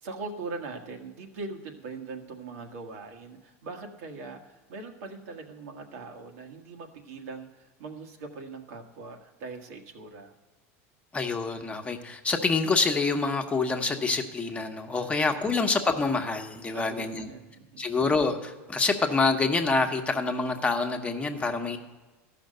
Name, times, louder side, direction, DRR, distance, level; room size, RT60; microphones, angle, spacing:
voice 1, 0.0-10.4 15.0-15.1 15.5-15.7 16.7-17.9, right 3 dB, 80° right, 3 dB, 1.5 m, -41 dB
voice 2, 11.1-17.3 17.8-21.8, left 4 dB, 15° left, 4 dB, 1.0 m, -26 dB
13.5 x 5.9 x 6.5 m, 1.2 s
supercardioid pair, 115°, 8 cm